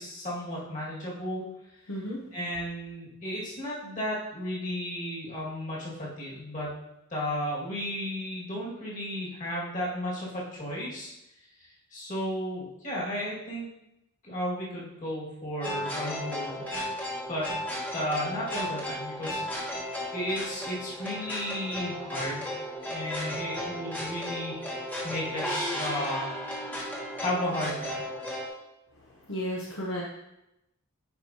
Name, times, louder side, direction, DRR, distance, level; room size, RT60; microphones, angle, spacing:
voice 1, 0.0-1.4 1.7-1.8 2.3-6.7 7.1-11.1 11.6-13.7 14.2-16.7 17.3-17.5 17.9-22.6 22.9-26.3 27.2-28.0, equal, 35° left, -6 dB, 2.0 m, -34 dB
voice 2, 1.9-2.2 28.9-30.0, equal, 60° left, -3 dB, 0.8 m, -34 dB
sound 1, 15.6-28.5, equal, 10° left, 1.2 m, -34 dB
9.8 x 4.6 x 2.8 m, 0.89 s
head